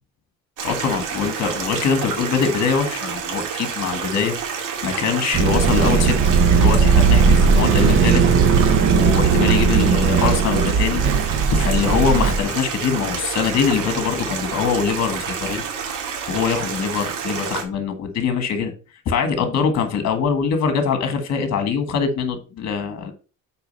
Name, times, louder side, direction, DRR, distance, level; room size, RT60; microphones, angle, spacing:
voice 1, 0.6-8.2 8.7-11.0 11.5-15.6 16.3-18.7 19.0-23.1, left 6 dB, 55° left, 7 dB, 1.8 m, -23 dB
Stream, 0.6-17.6, right 7 dB, 85° right, 2.1 m, -29 dB
sound 1, 5.3-12.4, right 5 dB, 40° right, 0.8 m, -17 dB
6.7 x 4.9 x 5.4 m, 0.35 s
cardioid pair, 130°, 31 cm